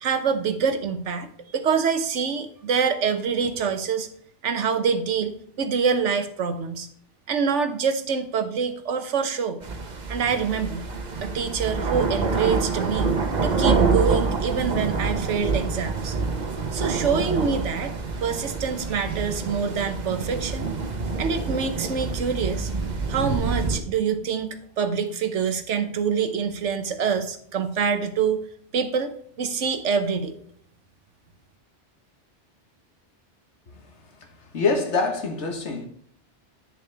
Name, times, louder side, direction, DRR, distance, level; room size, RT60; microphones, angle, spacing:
voice 1, 0.0-4.1 4.4-6.9 7.3-9.6 10.1-10.9 11.2-13.1 13.4-16.2 16.7-17.9 18.2-20.7 21.2-22.7 23.1-28.4 28.7-29.1 29.4-30.4, right 6 dB, 85° right, 1.2 m, -25 dB
sound 1, 9.6-23.8, right 4 dB, 40° right, 1.0 m, -26 dB
voice 2, 34.4-35.9, left 4 dB, 75° left, 1.7 m, -25 dB
10.0 x 6.6 x 3.4 m
omnidirectional pair, 1.2 m